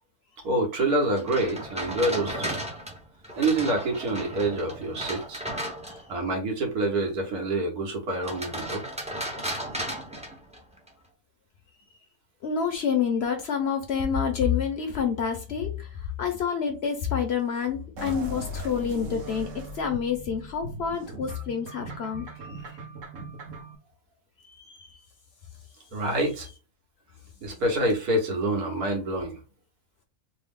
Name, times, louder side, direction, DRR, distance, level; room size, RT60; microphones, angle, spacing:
voice 1, 0.4-2.6 3.4-5.4 6.1-8.8 25.9-26.5 27.4-29.4, right 2 dB, 85° right, 1.6 m, -27 dB
sound 1, 1.2-6.2 8.1-10.9, right 1 dB, 10° right, 0.4 m, -35 dB
voice 2, 12.4-22.3 24.4-24.9, left 7 dB, 55° left, 0.8 m, -28 dB
sound 2, 18.0-23.8, right 1 dB, 65° right, 1.2 m, -39 dB
3.4 x 2.1 x 3.5 m
omnidirectional pair, 1.5 m